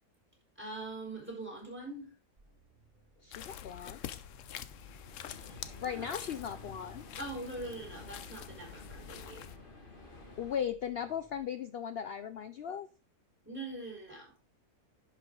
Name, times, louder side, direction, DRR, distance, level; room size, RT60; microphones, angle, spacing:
voice 1, 0.6-2.1 5.8-6.1 7.2-9.5 13.5-14.3, right 2 dB, 5° right, 3.9 m, -43 dB
sound 1, 2.4-11.5, right 3 dB, 30° right, 2.2 m, -59 dB
voice 2, 3.2-4.0 5.8-7.0 10.4-12.9, left 8 dB, 80° left, 0.5 m, -37 dB
sound 2, 3.3-9.6, left 11 dB, 65° left, 0.9 m, -47 dB
sound 3, 4.6-10.6, left 3 dB, 35° left, 2.1 m, -53 dB
10.5 x 5.8 x 3.7 m
omnidirectional pair, 1.6 m